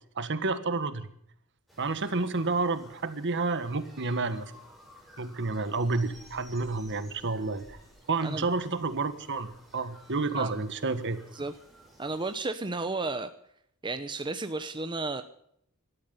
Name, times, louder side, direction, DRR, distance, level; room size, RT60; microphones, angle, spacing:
voice 1, 0.1-1.1 1.8-4.5 5.2-7.8 8.1-11.2, right 3 dB, 55° right, 11 dB, 1.6 m, -30 dB
sound 1, 1.7-12.4, equal, ahead, 6.9 m, -55 dB
voice 2, 12.0-13.3 13.8-15.2, right 3 dB, 20° right, 9 dB, 0.8 m, -33 dB
18.5 x 13.0 x 5.4 m, 0.70 s
head